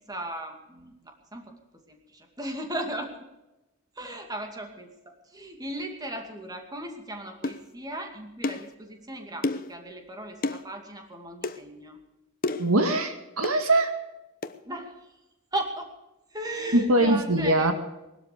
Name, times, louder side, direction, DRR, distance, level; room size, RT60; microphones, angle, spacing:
voice 1, 0.1-1.5 1.9-3.1 4.0-4.9 5.3-12.0 14.6-15.0 15.5-15.9 16.3-17.7, right 1 dB, 20° right, 3 dB, 2.4 m, -36 dB
sound 1, 7.4-7.6 8.4-8.7 9.4-9.7 10.4-10.6 11.4-11.6 12.4-12.7 13.4-13.6 14.4-14.6, left 2 dB, 40° left, 0.9 m, -30 dB
voice 2, 12.6-14.0 16.7-17.7, right 1 dB, 85° right, 7 dB, 2.0 m, -22 dB
20.0 x 12.5 x 5.1 m, 0.99 s
head